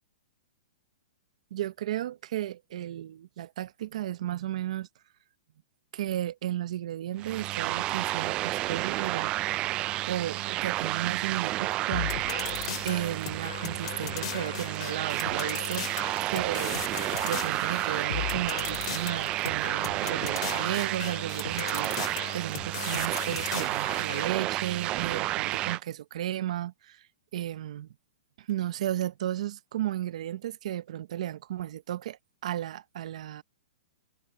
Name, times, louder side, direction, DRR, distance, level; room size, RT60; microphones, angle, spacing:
voice 1, 1.5-4.9 5.9-9.3 10.0-12.4 12.8-15.9 16.3-27.0 27.3-27.9 28.4-33.4, right 12 dB, 60° right, 0.9 m, -34 dB
sound 1, 7.2-25.8, right 16 dB, 25° right, 0.4 m, -31 dB
sound 2, 11.9-24.3, left 14 dB, 50° left, 2.9 m, -37 dB
hypercardioid pair, 160°, 4 cm